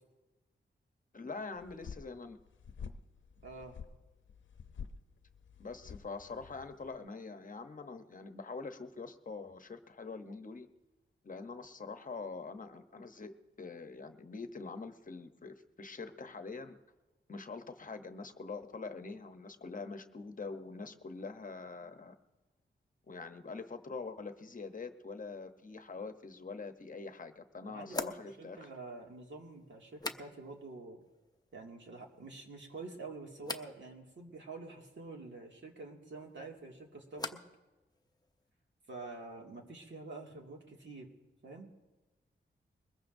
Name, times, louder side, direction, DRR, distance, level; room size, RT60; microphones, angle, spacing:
voice 1, 1.1-2.4 5.6-10.7 11.2-16.8 17.3-22.2 23.1-28.7, left 4 dB, 45° left, 8 dB, 0.9 m, -44 dB
sound 1, 1.6-7.0, left 6 dB, 75° left, 0.7 m, -49 dB
voice 2, 3.4-3.8 27.6-31.0 31.5-37.4 38.9-41.1 41.4-41.7, right 3 dB, 70° right, 0 dB, 2.3 m, -47 dB
sound 2, 26.6-26.7 27.9-30.7 31.0-31.6 31.9-32.6 33.4-33.8 36.2-37.6 37.9-38.5, left 3 dB, 20° left, 0.7 m, -45 dB
22.0 x 20.5 x 2.6 m, 1.1 s
wide cardioid pair, 110°, 20 cm